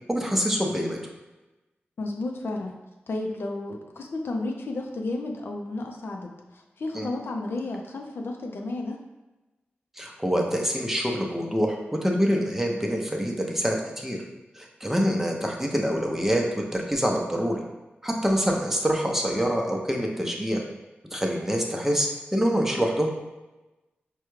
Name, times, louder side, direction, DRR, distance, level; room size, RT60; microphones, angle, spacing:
voice 1, 0.1-1.0 6.9-7.1 10.0-14.2 14.5-17.6 18.0-20.6 21.1-23.1, equal, 10° right, 0 dB, 0.6 m, -25 dB
voice 2, 2.0-2.7 3.1-9.0, left 2 dB, 70° left, 2 dB, 0.5 m, -32 dB
4.8 x 2.2 x 3.1 m, 1.1 s
cardioid pair, 60°, 4 cm